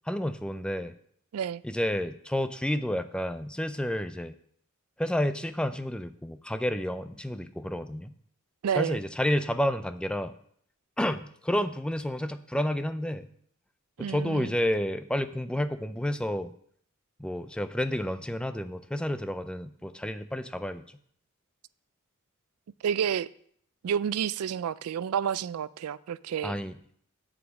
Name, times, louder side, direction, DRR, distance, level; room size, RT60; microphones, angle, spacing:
voice 1, 0.1-0.9 1.6-4.3 5.0-8.1 8.8-10.3 11.0-13.3 14.0-16.5 17.2-20.8 26.4-26.7, left 1 dB, 5° left, 0.4 m, -30 dB
voice 2, 8.6-9.0 14.0-14.5 22.8-23.3 23.8-26.6, right 8 dB, 75° right, 0.3 m, -30 dB
8.2 x 5.0 x 7.2 m
head